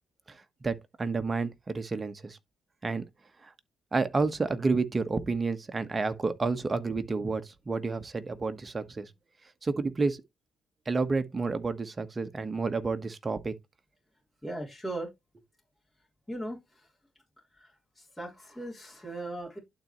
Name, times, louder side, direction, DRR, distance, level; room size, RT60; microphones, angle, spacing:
voice 1, 0.3-2.4 2.8-3.0 3.4-3.5 3.9-9.1 9.6-10.2 10.8-13.5, right 4 dB, 30° right, 1.2 m, -30 dB
voice 2, 14.4-15.1 16.3-16.9 17.6-19.6, right 1 dB, 10° left, 3.6 m, -38 dB
11.5 x 4.1 x 3.1 m
cardioid pair, 90°, 0 cm